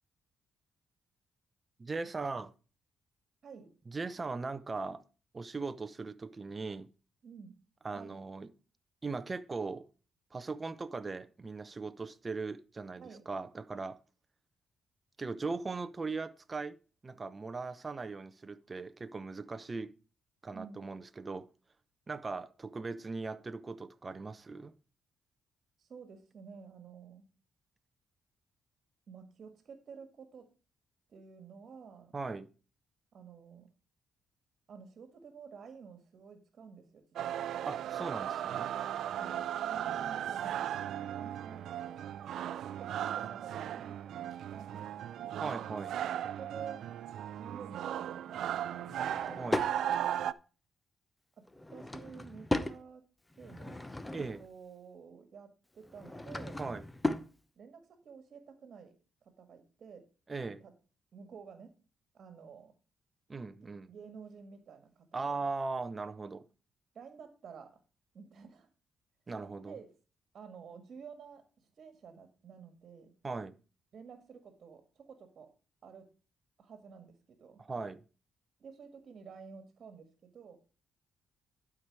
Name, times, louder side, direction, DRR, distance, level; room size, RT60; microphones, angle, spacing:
voice 1, 1.8-2.5 3.9-5.0 5.3-6.9 7.8-8.5 9.0-9.9 10.3-14.0 15.2-16.8 17.0-19.9 20.4-21.5 22.1-24.7 32.1-32.5 37.6-38.7 45.4-45.9 49.4-49.7 54.1-54.4 56.6-56.8 60.3-60.6 63.3-63.9 65.1-66.4 69.3-69.8 73.2-73.6 77.6-78.0, right 3 dB, 30° right, 0.7 m, -39 dB
voice 2, 7.2-7.6 7.9-8.2 13.0-13.2 20.5-20.8 25.8-27.3 29.1-30.5 31.1-32.2 33.1-33.7 34.7-37.0 39.1-42.1 42.4-45.4 46.2-46.8 47.4-49.2 51.4-51.5 51.7-53.0 53.4-53.8 54.1-56.6 57.5-58.9 59.2-60.0 60.4-60.7 61.1-61.7 62.1-62.8 63.9-65.4 66.9-67.8 68.1-68.7 69.6-69.9 70.3-73.1 73.9-75.5 75.8-76.1 76.6-77.6 78.6-80.6, right 6 dB, 60° right, 1.7 m, -51 dB
sound 1, 37.2-50.3, right 10 dB, 75° right, 0.4 m, -36 dB
Drawer open or close / Wood, 48.8-49.8 51.5-52.8 53.3-54.5 55.8-57.3, left 1 dB, 15° left, 0.8 m, -36 dB
11.5 x 4.8 x 4.7 m
cardioid pair, 75°, 0 cm